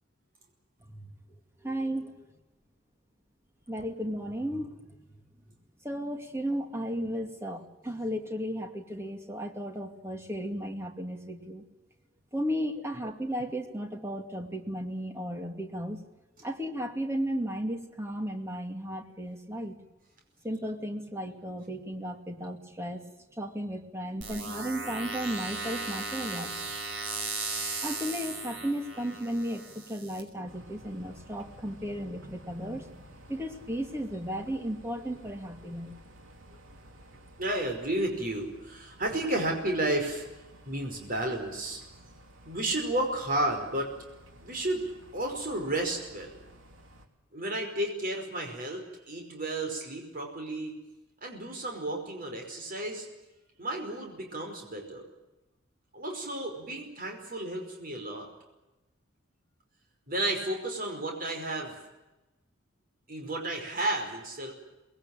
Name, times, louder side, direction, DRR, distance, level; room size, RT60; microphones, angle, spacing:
voice 1, 1.6-2.1 3.7-5.0 5.8-11.6 12.3-16.0 16.4-19.8 20.4-23.0 23.4-26.6 27.8-35.9, equal, 15° right, 4 dB, 2.3 m, -34 dB
sound 1, 24.2-30.2, right 3 dB, 65° right, 5.6 m, -36 dB
sound 2, 30.4-47.1, right 1 dB, 85° right, 3.2 m, -54 dB
voice 2, 37.4-40.2 40.6-41.8 42.4-43.9 44.4-46.3 47.3-50.7 51.2-53.1 53.6-55.1 55.9-58.3 60.1-61.8 63.1-64.5, right 1 dB, 45° right, 2 dB, 5.1 m, -32 dB
24.0 x 20.5 x 9.1 m, 1.0 s
head